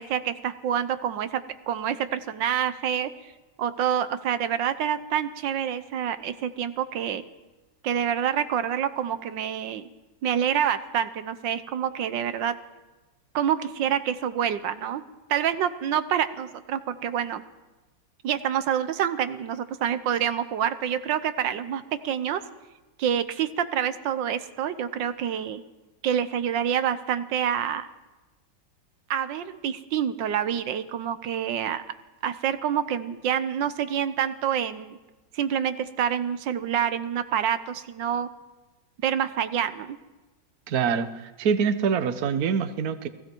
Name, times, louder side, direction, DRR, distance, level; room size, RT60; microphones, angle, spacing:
voice 1, 0.0-3.1 3.6-7.2 7.8-9.9 10.2-12.5 13.3-15.0 15.3-17.4 18.2-22.4 23.0-25.6 26.0-27.9 29.1-31.8 32.2-35.0 35.3-38.3 39.0-40.0, right 9 dB, 85° right, 11 dB, 1.6 m, -27 dB
voice 2, 40.7-43.1, right 6 dB, 60° right, 11 dB, 1.4 m, -25 dB
29.0 x 20.0 x 4.6 m, 1.1 s
omnidirectional pair, 1.9 m